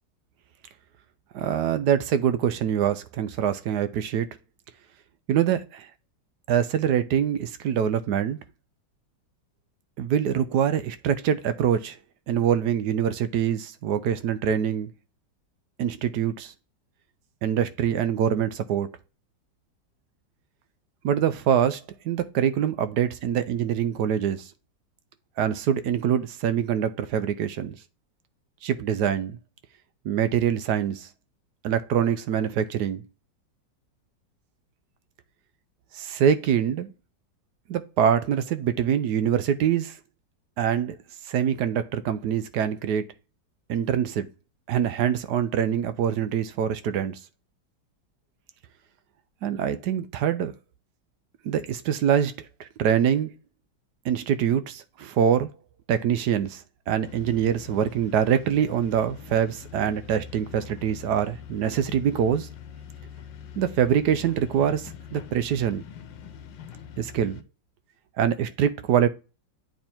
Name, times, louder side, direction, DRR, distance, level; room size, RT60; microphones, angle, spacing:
voice 1, 1.3-4.3 5.3-5.9 6.5-8.4 10.0-12.0 12.3-14.9 15.8-16.5 17.4-18.9 21.0-24.5 25.4-27.8 28.6-29.4 30.0-31.1 31.6-33.0 35.9-36.9 37.7-40.0 40.6-41.0 41.3-43.1 43.7-44.3 44.7-47.2 49.4-50.5 51.4-52.3 52.6-53.3 54.0-55.5 55.9-62.5 63.6-65.8 67.0-67.4 68.2-69.1, right 9 dB, 70° right, 1.1 m, -24 dB
sound 1, 57.0-67.4, left 8 dB, 80° left, 1.4 m, -43 dB
8.7 x 3.4 x 4.4 m
omnidirectional pair, 2.0 m